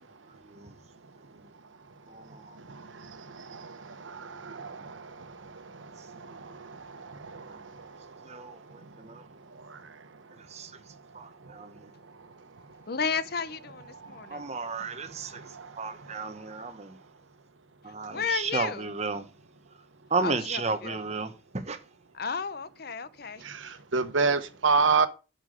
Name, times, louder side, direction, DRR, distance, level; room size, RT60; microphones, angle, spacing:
voice 1, 0.4-0.7 1.3-1.4 2.1-2.6 4.7-4.8 7.5-7.6 8.2-9.2 10.4-10.8 11.1-11.9 14.3-15.4 15.8-17.0 17.8-19.3 20.1-21.8, right 4 dB, 35° right, 1.1 m, -34 dB
voice 2, 2.6-8.9 9.5-10.1 11.4-11.5 12.2-12.3 13.9-14.9 15.2-16.2 23.4-25.1, right 4 dB, 90° right, 1.1 m, -32 dB
voice 3, 12.9-14.4 18.1-18.9 20.2-21.0 22.1-23.4, left 5 dB, 55° left, 0.7 m, -33 dB
7.3 x 6.9 x 6.4 m
head